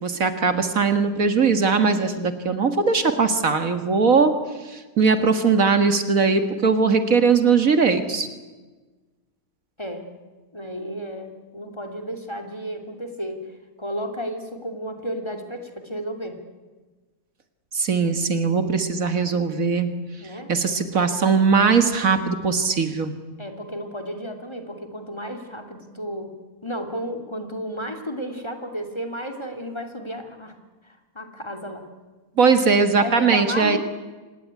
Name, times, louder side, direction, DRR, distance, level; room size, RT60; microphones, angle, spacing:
voice 1, 0.0-4.4 4.7-8.3 17.7-19.9 20.5-23.1 32.4-33.8, right 5 dB, 65° right, 9 dB, 2.2 m, -20 dB
voice 2, 10.5-13.4 13.8-16.4 20.2-20.5 23.4-26.4 26.6-30.5 30.8-31.9 33.0-33.8, equal, 20° left, 7 dB, 2.7 m, -33 dB
26.0 x 19.5 x 9.7 m, 1.3 s
omnidirectional pair, 1.6 m